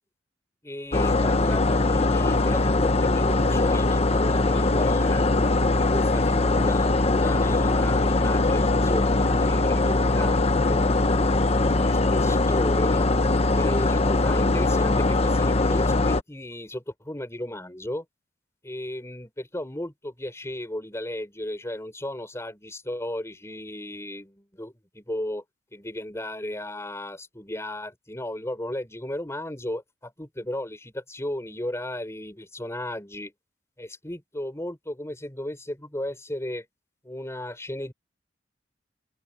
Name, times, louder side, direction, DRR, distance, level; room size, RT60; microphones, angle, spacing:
voice 1, 0.6-5.2 5.8-11.3 11.8-13.1 13.5-18.0 18.6-25.4 25.7-33.3 33.8-36.7 37.0-37.9, left 1 dB, 15° left, 4.3 m, -35 dB
sound 1, 0.9-16.2, left 2 dB, 35° left, 1.0 m, -21 dB
open air
head